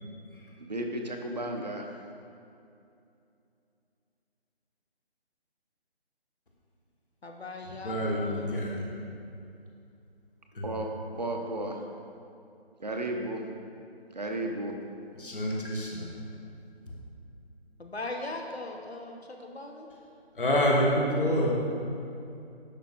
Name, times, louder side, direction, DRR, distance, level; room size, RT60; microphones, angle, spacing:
voice 1, 0.6-1.9 10.6-11.8 12.8-13.4 14.1-14.7, right 1 dB, 40° right, 2 dB, 0.6 m, -33 dB
voice 2, 7.2-8.5 17.8-19.9, left 2 dB, 75° left, 2 dB, 0.9 m, -39 dB
voice 3, 7.8-8.8 10.6-10.7 15.2-16.1 20.4-21.5, equal, 55° left, -2 dB, 1.4 m, -27 dB
10.5 x 5.8 x 2.5 m, 2.6 s
figure-of-eight pair, 155°, 32 cm